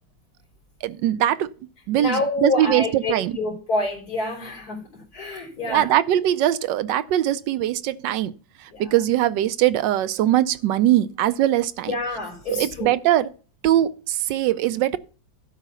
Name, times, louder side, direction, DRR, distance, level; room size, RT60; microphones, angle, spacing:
voice 1, 0.8-1.5 1.9-2.8 3.1-3.3 5.7-8.3 8.8-11.9 12.5-13.3 13.6-15.0, right 12 dB, 75° right, 1.2 m, -21 dB
voice 2, 1.9-5.9 8.7-8.9 11.9-12.9, left 2 dB, 50° left, 3.8 m, -28 dB
12.0 x 4.1 x 6.7 m
omnidirectional pair, 2.0 m